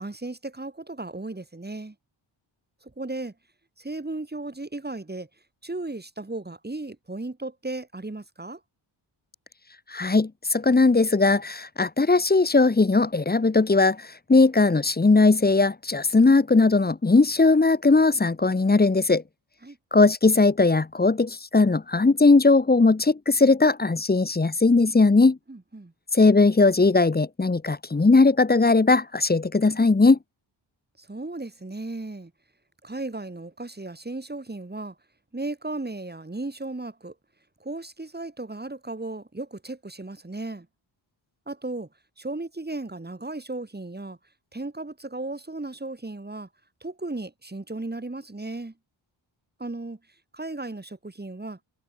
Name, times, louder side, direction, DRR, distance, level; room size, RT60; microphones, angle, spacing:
voice 1, 0.0-1.9 2.8-3.3 3.8-5.3 5.6-8.6 19.6-19.8 25.5-25.9 31.0-32.3 32.8-35.0 35.3-37.1 37.6-40.7 41.5-41.9 42.2-44.2 44.5-46.5 46.8-48.7 49.6-50.0 50.3-51.6, right 2 dB, 20° right, 4.8 m, -35 dB
voice 2, 9.9-14.0 14.3-19.2 19.9-25.4 26.1-30.2, left 3 dB, 20° left, 1.0 m, -19 dB
wide cardioid pair, 110°, 48 cm